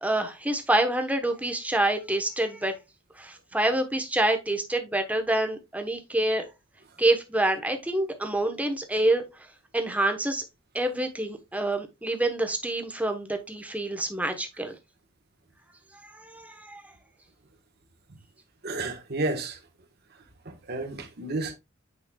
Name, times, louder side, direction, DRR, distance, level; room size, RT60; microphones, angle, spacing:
voice 1, 0.0-2.7 3.2-6.4 7.0-9.2 9.7-10.4 10.7-14.7 16.1-16.8, right 1 dB, 10° right, 0.9 m, -27 dB
voice 2, 18.6-19.6 20.4-21.5, right 2 dB, 55° right, 1.2 m, -31 dB
8.5 x 5.1 x 2.2 m
head